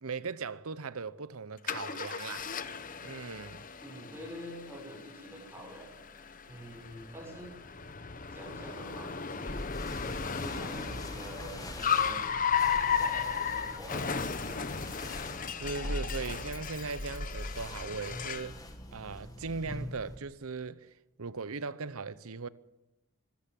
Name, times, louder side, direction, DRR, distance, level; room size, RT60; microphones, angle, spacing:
voice 1, 0.0-2.5 3.0-3.7 15.5-18.6 18.9-22.5, right 4 dB, 80° right, 0.8 m, -39 dB
Car, 1.7-18.6, left 7 dB, 35° left, 0.9 m, -35 dB
voice 2, 3.8-5.9 6.5-7.5 8.3-9.6 10.1-12.3 12.8-14.6, equal, 10° right, 6.5 m, -46 dB
sound 1, 9.5-20.2, left 1 dB, 15° left, 1.9 m, -42 dB
25.5 x 13.5 x 7.7 m
head